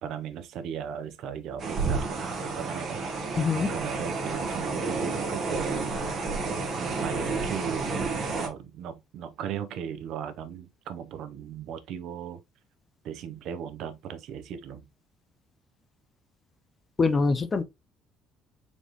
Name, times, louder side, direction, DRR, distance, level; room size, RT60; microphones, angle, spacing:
voice 1, 0.0-3.0 3.5-5.8 6.7-7.9 8.3-12.4 13.0-14.8, right 8 dB, 60° right, 0.6 m, -37 dB
sound 1, 1.6-8.5, right 3 dB, 35° right, 1.2 m, -30 dB
voice 2, 3.4-3.7 17.0-17.6, left 4 dB, 20° left, 0.4 m, -24 dB
4.1 x 3.4 x 3.0 m
cardioid pair, 170°, 0 cm